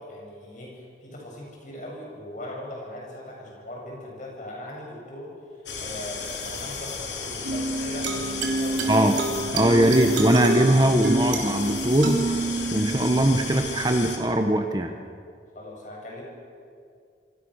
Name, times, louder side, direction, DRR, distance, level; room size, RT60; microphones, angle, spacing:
voice 1, 0.0-9.1 9.8-10.1 15.5-16.2, left 1 dB, 45° left, -1 dB, 7.9 m, -39 dB
sound 1, 5.7-14.2, left 5 dB, 75° left, 3.7 m, -34 dB
sound 2, 7.4-14.4, right 2 dB, 85° right, 3.7 m, -28 dB
voice 2, 8.9-9.2 9.5-12.4 12.7-14.9, right 1 dB, 25° right, 5 dB, 1.2 m, -21 dB
27.5 x 25.0 x 6.6 m, 2.3 s
head